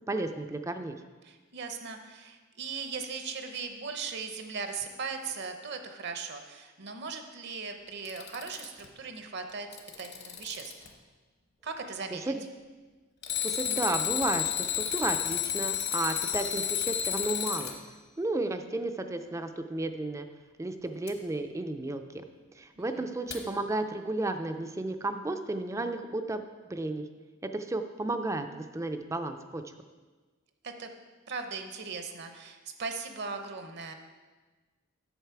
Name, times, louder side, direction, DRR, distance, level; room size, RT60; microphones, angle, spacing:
voice 1, 0.1-1.0 12.3-12.4 13.4-17.7 18.2-20.3 20.6-22.2 22.5-26.4 26.7-27.1 27.4-29.6, right 2 dB, 15° right, 7 dB, 0.4 m, -33 dB
voice 2, 1.2-9.7 10.0-10.8 11.6-12.3 22.8-23.0 30.6-30.9 31.3-33.9, right 5 dB, 55° right, 6 dB, 0.7 m, -38 dB
Alarm, 7.9-8.9 9.5-10.9 13.2-17.8 21.1-21.2 23.3-23.4, left 10 dB, 55° left, 1.0 m, -31 dB
8.0 x 6.4 x 4.6 m, 1.3 s
head